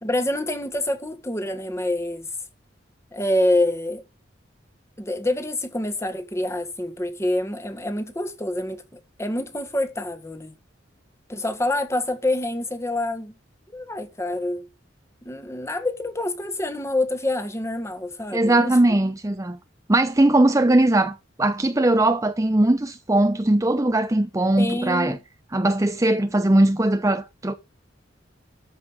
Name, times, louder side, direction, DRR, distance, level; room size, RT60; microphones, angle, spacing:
voice 1, 0.0-2.3 3.1-4.0 5.0-10.5 11.3-13.3 13.7-14.7 15.2-18.8 24.6-25.2, left 1 dB, 15° left, 1.6 m, -26 dB
voice 2, 18.3-19.6 19.9-25.2 25.5-27.6, right 1 dB, 15° right, 0.7 m, -20 dB
13.0 x 5.4 x 7.1 m
head